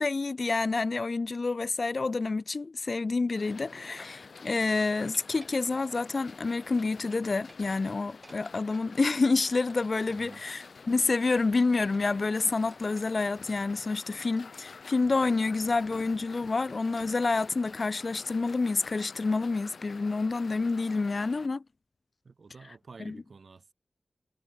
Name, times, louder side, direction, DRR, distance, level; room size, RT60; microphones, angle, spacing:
voice 1, 0.0-21.6 23.0-23.2, left 3 dB, 55° left, 0.4 m, -28 dB
sound 1, 3.3-21.5, left 5 dB, 80° left, 2.4 m, -49 dB
sound 2, 5.1-6.3 6.6-7.1 7.4-8.9 9.7-10.7 11.3-13.5 14.3-14.6 15.0-15.1 15.7-16.0 16.3-16.5 17.0-17.3, right 2 dB, 30° right, 4.1 m, -59 dB
voice 2, 10.1-10.5 22.2-23.7, right 4 dB, 70° right, 2.8 m, -50 dB
wide cardioid pair, 95°, 0 cm